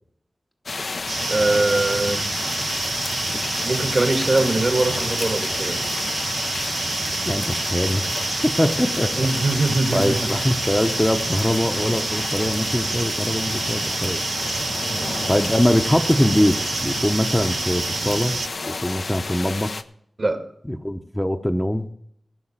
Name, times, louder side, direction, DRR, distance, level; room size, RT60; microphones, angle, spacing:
sound 1, 0.7-19.8, left 3 dB, 70° left, 0.8 m, -30 dB
sound 2, 1.1-18.5, right 4 dB, 85° right, 0.6 m, -28 dB
voice 1, 1.3-2.3 3.6-5.8 9.2-10.3 14.9-15.2 20.2-20.5, right 2 dB, 50° right, 2.2 m, -22 dB
voice 2, 7.3-8.1 8.4-9.6 9.9-14.2 15.3-18.3 18.7-19.8 20.7-21.9, left 1 dB, 10° left, 1.0 m, -22 dB
17.5 x 5.9 x 7.5 m
cardioid pair, 45°, 0 cm